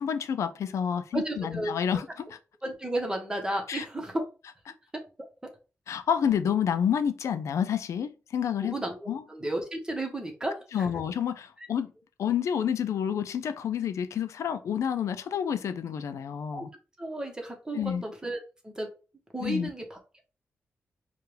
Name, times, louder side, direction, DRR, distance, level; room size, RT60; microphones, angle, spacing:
voice 1, 0.0-2.4 3.7-3.8 5.9-8.7 9.1-9.2 10.7-11.9 12.2-16.7 17.7-18.0 19.4-19.7, left 8 dB, 90° left, 0.4 m, -29 dB
voice 2, 1.1-1.7 2.6-4.2 8.6-10.9 16.5-16.6 17.0-18.4 18.6-18.9 19.3-20.0, right 1 dB, 15° right, 1.2 m, -33 dB
4.6 x 2.4 x 3.3 m
cardioid pair, 90°, 5 cm